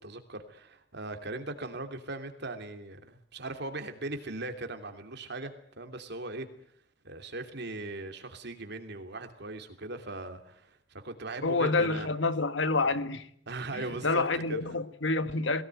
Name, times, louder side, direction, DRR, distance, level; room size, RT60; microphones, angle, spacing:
voice 1, 0.0-6.5 7.0-12.1 13.5-14.6, right 2 dB, 60° right, 3.0 m, -39 dB
voice 2, 11.4-13.3 13.7-15.6, left 3 dB, 70° left, 1.4 m, -28 dB
21.5 x 18.0 x 9.1 m
head